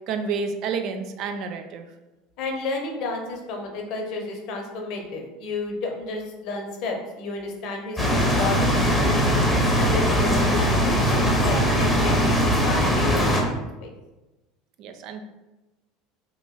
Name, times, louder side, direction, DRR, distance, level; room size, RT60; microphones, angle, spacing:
voice 1, 0.1-1.9 14.8-15.2, right 5 dB, 55° right, 6 dB, 0.4 m, -29 dB
voice 2, 2.4-9.4 9.8-13.9, left 3 dB, 60° left, 2 dB, 0.8 m, -32 dB
sound 1, 8.0-13.4, equal, 5° left, 0.8 m, -20 dB
3.0 x 2.5 x 3.8 m, 1.1 s
hypercardioid pair, 80°, 0 cm